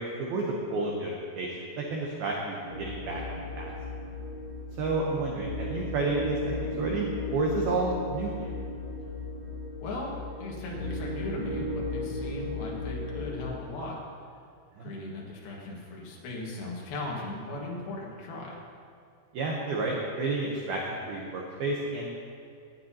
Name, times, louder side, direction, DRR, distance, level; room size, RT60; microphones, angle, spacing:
voice 1, 0.0-3.7 4.8-8.5 14.8-14.9 19.3-22.1, right 3 dB, 90° right, -2 dB, 2.1 m, -31 dB
sound 1, 2.6-13.4, left 2 dB, 50° right, 3.2 m, -36 dB
voice 2, 9.8-14.0 14.8-18.6, left 2 dB, 60° left, -3 dB, 3.1 m, -38 dB
18.5 x 9.1 x 2.9 m, 2.3 s
omnidirectional pair, 5.8 m